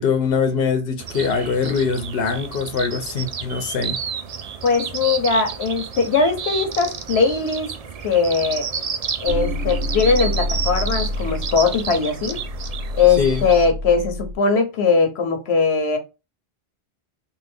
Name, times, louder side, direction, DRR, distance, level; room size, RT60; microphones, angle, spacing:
voice 1, 0.0-4.0 13.2-13.5, left 5 dB, 65° left, 0.9 m, -22 dB
sound 1, 1.0-13.7, right 6 dB, 50° right, 0.5 m, -31 dB
voice 2, 4.6-7.7 8.0-8.7 9.2-12.4 12.9-16.0, left 5 dB, 90° left, 1.1 m, -20 dB
sound 2, 9.3-14.4, left 1 dB, 85° right, 1.1 m, -28 dB
3.6 x 2.5 x 3.3 m
omnidirectional pair, 1.0 m